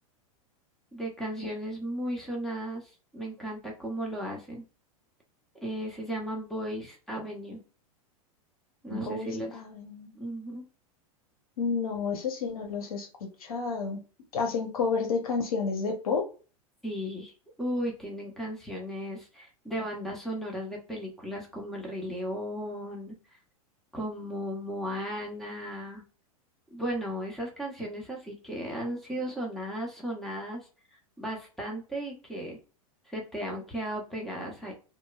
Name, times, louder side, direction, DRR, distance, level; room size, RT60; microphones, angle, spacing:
voice 1, 0.9-4.6 5.6-7.6 8.8-9.6 10.1-10.6 16.8-17.3 17.6-23.2 23.9-26.0 26.7-30.7 31.2-32.6 33.1-34.7, equal, ahead, -1 dB, 0.9 m, -35 dB
voice 2, 8.9-10.1 11.6-13.1 13.4-14.0 14.3-16.2, left 5 dB, 80° left, 3 dB, 0.9 m, -30 dB
3.0 x 2.2 x 2.3 m, 0.35 s
hypercardioid pair, 110°, 18 cm